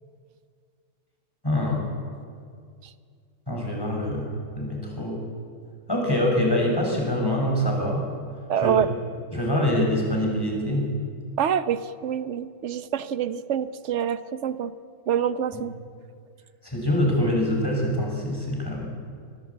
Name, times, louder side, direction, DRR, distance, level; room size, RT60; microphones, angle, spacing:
voice 1, 1.4-1.8 3.5-5.2 5.9-8.0 8.6-8.9 9.3-10.9 16.6-18.9, left 1 dB, 10° left, -1 dB, 6.3 m, -25 dB
voice 2, 8.5-8.9 11.4-14.7 15.1-15.7, right 9 dB, 55° right, 13 dB, 0.8 m, -26 dB
25.0 x 19.5 x 8.6 m, 2.2 s
omnidirectional pair, 2.2 m